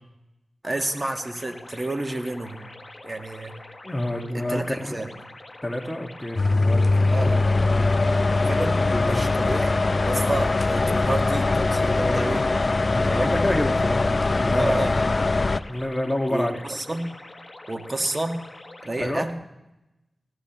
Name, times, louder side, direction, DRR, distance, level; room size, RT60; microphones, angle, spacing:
sound 1, 0.6-19.3, left 2 dB, 35° left, 1.3 m, -44 dB
voice 1, 0.6-2.7 3.0-3.5 4.3-5.1 7.1-7.4 8.3-9.7 10.0-12.5 13.1-13.4 14.5-15.1 16.3-17.1 17.7-18.4 18.8-19.3, right 2 dB, 35° right, 5 dB, 1.6 m, -30 dB
voice 2, 3.8-5.0 5.6-7.0 8.9-9.3 12.8-14.0 14.3-15.0 15.7-16.6 19.0-19.3, left 1 dB, 15° left, 3 dB, 1.6 m, -28 dB
sound 2, 6.4-15.6, left 3 dB, 55° left, 0.5 m, -22 dB
19.5 x 15.5 x 3.0 m, 0.94 s
cardioid pair, 45°, 0 cm